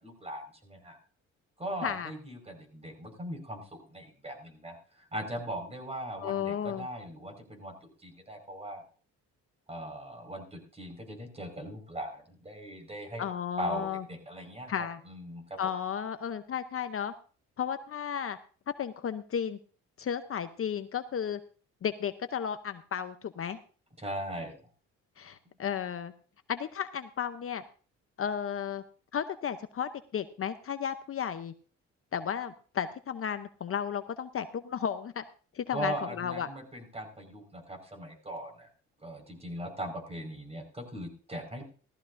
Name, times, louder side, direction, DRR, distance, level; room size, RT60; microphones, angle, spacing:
voice 1, 0.0-1.0 1.6-8.8 9.7-13.2 13.6-15.6 24.0-24.6 25.4-25.6 35.7-38.7 39.0-41.6, right 1 dB, 20° right, 4 dB, 4.9 m, -39 dB
voice 2, 6.2-6.9 13.2-14.0 14.7-15.0 15.6-17.1 17.6-18.4 18.8-19.6 20.0-21.4 21.8-23.6 25.2-26.1 26.5-27.6 28.2-28.8 29.1-31.5 32.1-35.2 35.5-36.5, left 8 dB, 45° left, 10 dB, 0.8 m, -33 dB
16.5 x 14.5 x 2.6 m, 0.40 s
cardioid pair, 90°, 30 cm